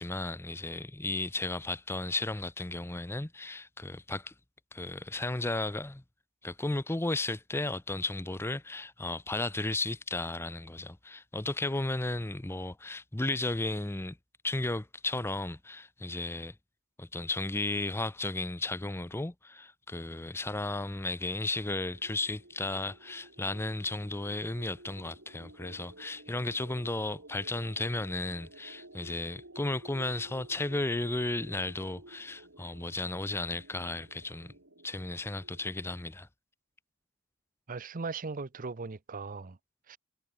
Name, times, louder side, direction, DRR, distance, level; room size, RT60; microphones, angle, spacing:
voice 1, 0.0-4.3 4.7-6.0 6.4-14.2 14.4-16.5 17.0-34.5 34.8-36.3, left 2 dB, 10° left, 0.6 m, -34 dB
sound 1, 21.9-36.1, right 1 dB, 65° right, 5.2 m, -54 dB
voice 2, 37.7-39.6 39.9-40.0, right 4 dB, 40° right, 0.7 m, -38 dB
head